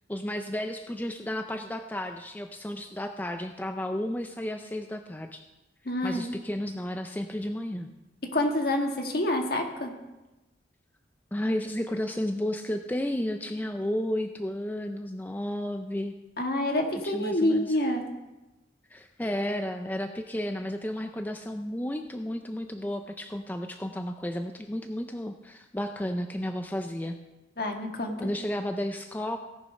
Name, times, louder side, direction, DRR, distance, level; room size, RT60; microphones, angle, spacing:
voice 1, 0.1-5.4 6.0-7.9 11.3-16.2 17.0-17.7 18.9-27.2 28.2-29.4, left 1 dB, 10° left, 6 dB, 0.4 m, -32 dB
voice 2, 5.8-6.3 8.3-9.9 16.4-18.0 27.6-28.3, left 1 dB, 55° left, 3 dB, 1.6 m, -27 dB
17.0 x 6.8 x 5.4 m, 1.0 s
head